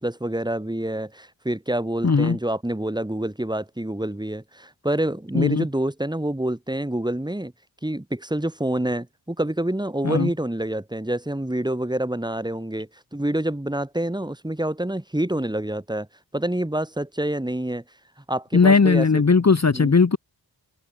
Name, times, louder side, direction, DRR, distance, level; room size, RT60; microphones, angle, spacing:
voice 1, 0.0-7.5 7.8-16.1 16.3-17.8 18.3-19.2 19.7-19.9, right 1 dB, 10° right, 1.9 m, -27 dB
voice 2, 2.0-2.4 5.3-5.7 10.0-10.3 18.5-20.2, left 4 dB, 35° left, 1.1 m, -18 dB
open air
cardioid pair, 50°, 45 cm